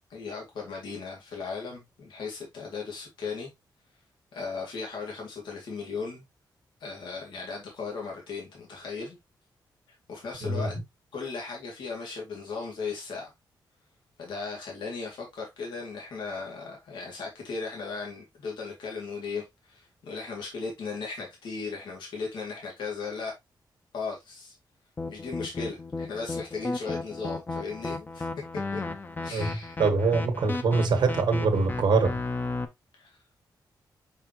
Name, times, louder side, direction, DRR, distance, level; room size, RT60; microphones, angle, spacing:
voice 1, 0.1-3.5 4.3-6.2 6.8-9.2 10.1-10.8 11.1-13.3 14.2-23.3 23.9-24.5 25.1-28.3 28.7-28.8 29.2-29.8 33.0-33.2, left 4 dB, 85° left, 2.4 m, -37 dB
sound 1, 25.0-32.6, left 3 dB, 25° left, 0.8 m, -34 dB
voice 2, 29.8-32.2, right 4 dB, 80° right, 1.5 m, -24 dB
5.7 x 5.5 x 3.0 m
wide cardioid pair, 120°, 8 cm